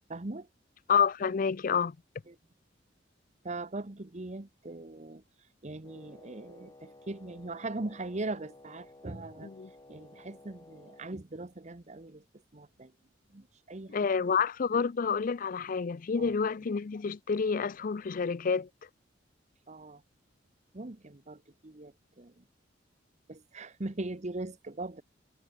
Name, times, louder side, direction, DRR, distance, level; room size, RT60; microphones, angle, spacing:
voice 1, 0.1-0.5 2.3-2.4 3.4-5.2 5.6-9.5 9.9-12.2 12.5-12.9 13.3-14.0 14.3-14.4 14.7-14.8 16.2-16.3 19.7-20.0 20.7-22.4 23.3-25.0, right 2 dB, 35° right, 1.0 m, -40 dB
voice 2, 0.9-2.0 9.4-9.7 13.9-18.7, left 6 dB, 45° left, 0.4 m, -29 dB
Wind instrument woodwind instrument, 5.8-11.2, left 2 dB, 20° left, 1.2 m, -55 dB
head